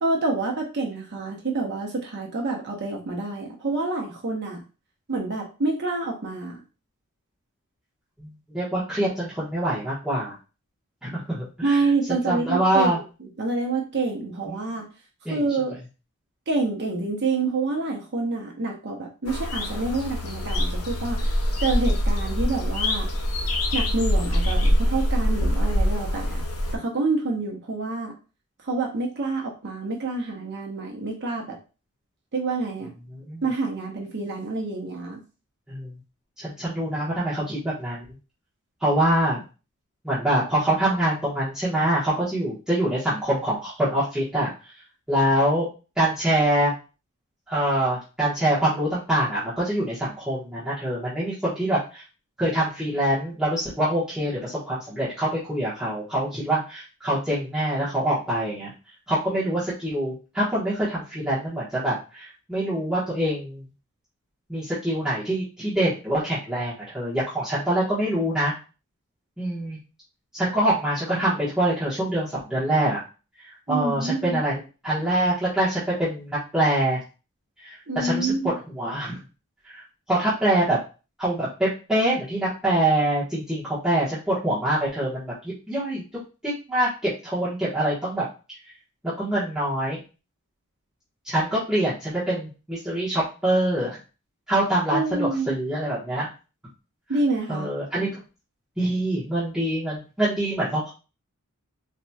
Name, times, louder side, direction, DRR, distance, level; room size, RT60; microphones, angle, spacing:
voice 1, 0.0-4.6 5.1-6.6 11.6-13.0 13.4-14.9 15.3-15.8 16.5-23.1 23.7-26.4 26.7-28.1 28.6-31.6 32.3-32.9 33.4-35.2 73.7-74.4 77.9-78.5 94.9-95.6 97.1-97.7, right 3 dB, 50° right, 0 dB, 0.7 m, -27 dB
voice 2, 8.2-10.3 11.0-11.8 12.1-13.0 14.5-14.6 15.2-15.4 33.1-33.4 35.7-36.0 36.4-38.0 38.8-39.4 40.0-44.7 45.1-45.7 46.0-46.7 47.5-52.0 52.4-58.7 59.1-63.7 64.5-68.5 69.4-69.8 70.3-73.0 73.4-77.0 77.6-78.3 78.7-79.2 79.6-79.8 80.1-80.8 81.2-85.3 85.7-86.0 86.4-88.2 89.2-90.0 91.2-94.0 94.5-96.3 97.5-98.2 98.8-100.9, right 1 dB, 5° right, -11 dB, 1.2 m, -25 dB
sound 1, 19.3-26.8, equal, 80° left, 0.7 m, -24 dB
4.1 x 2.9 x 2.3 m, 0.32 s
head